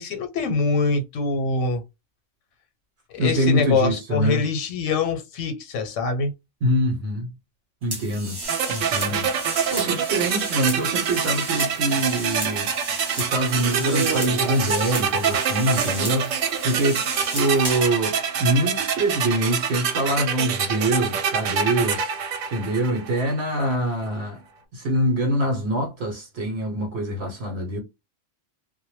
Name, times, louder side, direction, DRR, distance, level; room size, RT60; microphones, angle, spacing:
voice 1, 0.0-1.8 3.1-6.3, left 4 dB, 90° left, 1.0 m, -24 dB
voice 2, 3.2-4.5 6.6-7.3 7.8-8.4 8.7-12.7 13.1-24.4 24.7-27.8, right 1 dB, 65° right, 0.9 m, -24 dB
sound 1, 7.9-17.9, right 2 dB, 25° right, 0.6 m, -33 dB
sound 2, 8.5-23.4, right 7 dB, 85° right, 1.0 m, -26 dB
2.1 x 2.1 x 3.0 m
omnidirectional pair, 1.3 m